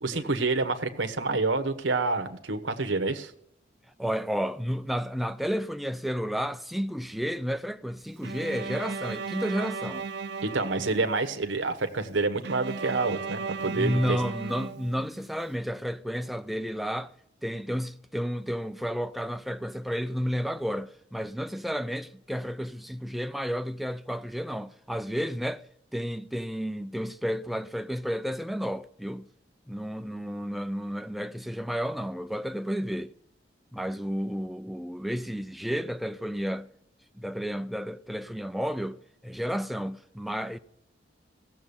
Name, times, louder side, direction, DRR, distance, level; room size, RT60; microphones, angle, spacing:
voice 1, 0.0-3.3 10.4-14.2, right 3 dB, 90° right, 1.1 m, -28 dB
voice 2, 4.0-10.1 13.6-17.1 17.4-25.6 25.9-29.3 29.7-33.1 33.7-36.7 37.2-40.6, equal, ahead, 0.4 m, -32 dB
Bowed string instrument, 8.2-11.4 12.4-15.4, right 5 dB, 60° right, 0.7 m, -36 dB
16.0 x 7.4 x 7.0 m
head